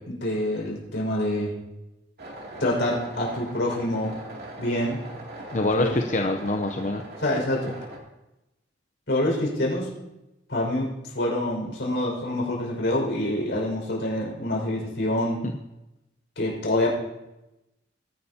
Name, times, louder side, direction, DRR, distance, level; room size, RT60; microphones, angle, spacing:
voice 1, 0.0-1.5 2.6-4.1 4.6-5.0 5.8-6.0 7.2-7.7 9.1-9.9 10.5-15.4 16.4-16.9, left 1 dB, 65° left, -2 dB, 5.5 m, -26 dB
sound 1, 2.2-8.0, right 1 dB, 55° right, 2.7 m, -40 dB
voice 2, 5.5-7.0, left 2 dB, 40° left, 4 dB, 0.7 m, -25 dB
21.0 x 11.5 x 2.8 m, 0.94 s
head